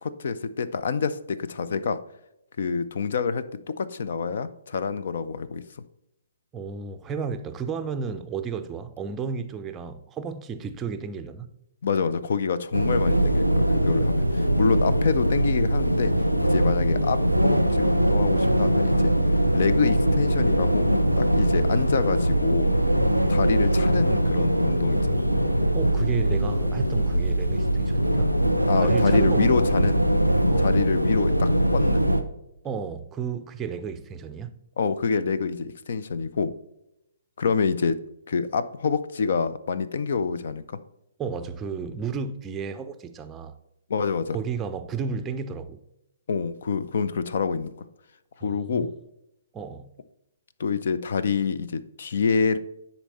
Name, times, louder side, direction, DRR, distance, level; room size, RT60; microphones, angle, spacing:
voice 1, 0.0-2.0 2.6-5.6 11.8-16.1 16.4-19.1 19.5-20.9 21.2-22.7 23.3-25.2 28.6-30.0 30.6-32.1 34.8-36.5 37.4-38.0 38.3-40.8 43.9-44.4 46.3-47.7 48.4-48.9 50.6-52.6, left 5 dB, 50° left, 0.5 m, -27 dB
voice 2, 6.5-11.5 25.7-28.4 28.8-29.6 30.5-31.0 32.6-34.5 41.2-43.6 44.3-45.8 48.4-48.9 49.5-49.9, right 6 dB, 15° right, 0.5 m, -33 dB
sound 1, 12.7-32.2, right 1 dB, 90° left, 0.7 m, -22 dB
10.0 x 4.2 x 4.1 m
figure-of-eight pair, 125°, 0 cm